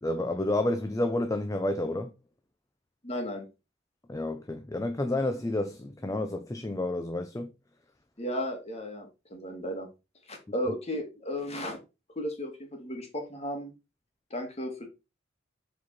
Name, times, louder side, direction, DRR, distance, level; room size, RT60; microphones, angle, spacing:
voice 1, 0.0-2.1 4.1-7.5, left 1 dB, 15° left, 0.5 m, -30 dB
voice 2, 3.0-3.5 8.2-9.9 10.3-11.8 12.2-13.7 14.3-14.9, equal, 35° left, 2.2 m, -34 dB
7.5 x 4.4 x 4.1 m
head